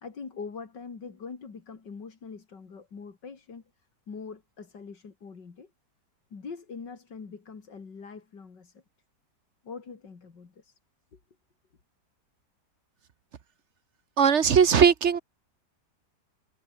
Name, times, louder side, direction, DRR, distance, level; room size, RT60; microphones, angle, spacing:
voice 1, 0.0-3.6 4.1-5.7 6.3-8.8 9.6-10.8 11.1-11.2, left 5 dB, 90° left, 3.3 m, -43 dB
voice 2, 14.2-15.2, right 7 dB, 45° right, 1.2 m, -19 dB
omnidirectional pair, 1.8 m